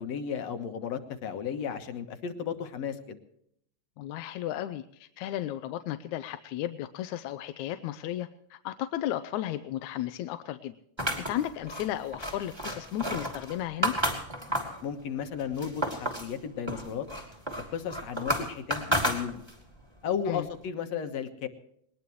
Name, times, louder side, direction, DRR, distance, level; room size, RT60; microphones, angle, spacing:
voice 1, 0.0-3.2 14.8-17.1 17.6-19.4 20.0-21.5, left 7 dB, 65° left, 7 dB, 2.4 m, -34 dB
voice 2, 4.0-10.7 11.3-13.9 20.3-20.5, left 12 dB, 85° left, 10 dB, 2.1 m, -34 dB
sound 1, 11.0-14.8 15.3-16.3 16.7-19.7, equal, 10° right, 2.4 m, -32 dB
21.0 x 20.0 x 3.2 m, 0.70 s
omnidirectional pair, 3.3 m